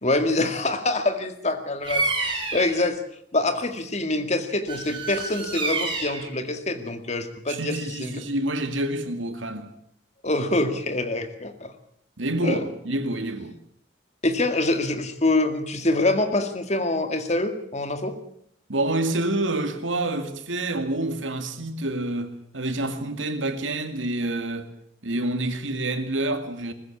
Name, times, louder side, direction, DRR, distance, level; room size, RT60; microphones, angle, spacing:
voice 1, 0.0-3.0 3.3-8.3 10.2-11.7 12.4-12.6 14.2-18.2, left 2 dB, 35° left, 2.1 m, -25 dB
Bird vocalization bird call bird song, 1.8-2.8 4.7-6.3, right 3 dB, 25° right, 5.1 m, -28 dB
voice 2, 7.5-9.7 12.2-13.5 18.7-24.7 25.0-26.7, right 1 dB, 90° right, 2.2 m, -27 dB
20.5 x 15.0 x 8.5 m
head